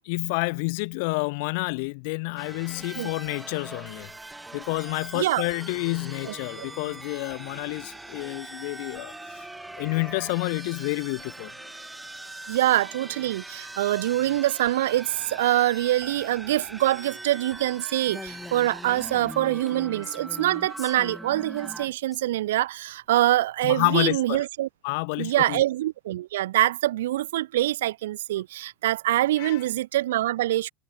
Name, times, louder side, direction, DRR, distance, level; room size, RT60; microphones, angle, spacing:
voice 1, 0.1-4.1 4.5-9.5 9.8-11.5 23.6-24.4 24.8-25.6 29.4-29.6, left 30 dB, 65° left, 0.4 m, -29 dB
sound 1, 2.4-21.9, right 2 dB, 10° right, 5.2 m, -41 dB
sound 2, 5.1-16.8, left 17 dB, 50° left, 6.3 m, -60 dB
voice 2, 5.1-5.5 6.2-6.7 12.5-24.7 25.2-30.7, right 14 dB, 80° right, 0.4 m, -25 dB
Female speech woman speaking, 18.1-22.2, left 3 dB, 15° left, 1.3 m, -43 dB
hypercardioid pair, 105°, 0 cm